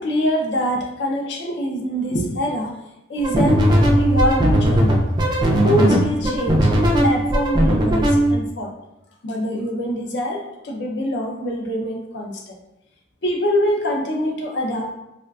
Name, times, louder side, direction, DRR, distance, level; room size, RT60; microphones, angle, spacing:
voice 1, 0.0-2.7 3.1-3.7 4.0-5.0 5.6-8.7 9.2-12.6 13.2-14.9, equal, 60° left, 0 dB, 0.5 m, -24 dB
sound 1, 3.2-8.3, right 1 dB, 20° right, 0.3 m, -18 dB
3.5 x 2.3 x 2.3 m, 0.91 s
head